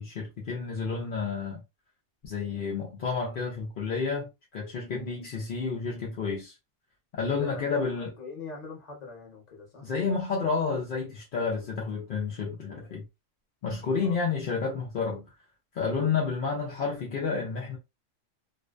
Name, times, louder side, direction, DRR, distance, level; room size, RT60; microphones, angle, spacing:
voice 1, 0.0-1.6 2.2-6.5 7.1-8.1 9.8-13.0 13.6-15.3 15.7-17.8, left 5 dB, 60° left, 0.6 m, -30 dB
voice 2, 4.9-5.3 7.2-9.9 14.0-14.3, left 3 dB, 35° left, 0.9 m, -43 dB
2.5 x 2.1 x 2.3 m
omnidirectional pair, 1.3 m